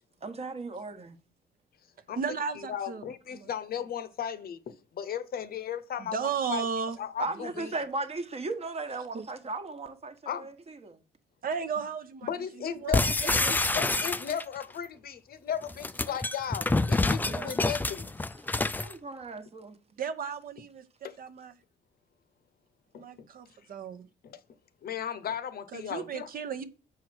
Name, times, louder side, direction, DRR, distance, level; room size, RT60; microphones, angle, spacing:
voice 1, 0.2-1.2 7.2-11.0 18.8-19.8, right 3 dB, 35° right, 1.2 m, -36 dB
voice 2, 2.1-3.0 3.3-3.5 6.0-7.0 9.1-9.2 11.4-12.3 12.6-13.8 17.2-17.5 20.0-20.8 21.2-21.5 23.0-24.1 25.7-26.6, right 6 dB, 50° right, 0.9 m, -35 dB
voice 3, 2.7-6.6 7.0-7.7 10.3-10.5 12.2-18.1 21.0-21.2 22.9-23.0 24.2-24.4 24.8-26.3, left 8 dB, 55° left, 0.8 m, -36 dB
sound 1, 12.9-14.6 15.6-18.9, left 2 dB, 10° left, 0.3 m, -27 dB
6.4 x 4.7 x 6.1 m
cardioid pair, 95°, 19 cm